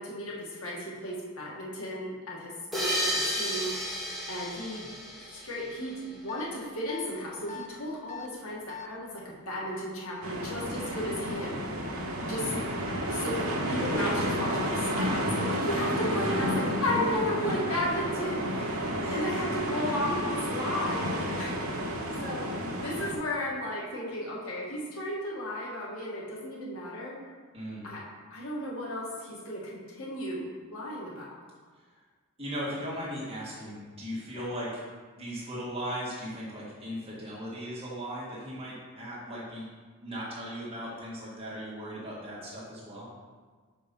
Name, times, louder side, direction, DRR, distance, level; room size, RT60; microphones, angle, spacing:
voice 1, 0.0-3.8 4.3-4.9 5.3-11.6 12.3-12.5 13.1-21.5 22.2-27.2 27.8-28.0 28.3-31.3 34.4-34.5, left 1 dB, 75° left, -4 dB, 1.8 m, -34 dB
sound 1, 2.7-6.0, equal, ahead, 1.5 m, -32 dB
sound 2, 6.3-6.5 6.9-7.1 7.5-7.7 8.1-8.3 8.7-8.9, left 7 dB, 35° left, 0.6 m, -41 dB
sound 3, 10.2-23.1, equal, 70° right, 1.1 m, -31 dB
voice 2, 27.5-27.9 32.4-34.8 35.1-39.7 40.0-43.0, equal, 25° right, -7 dB, 2.0 m, -38 dB
5.9 x 5.4 x 5.4 m, 1.5 s
head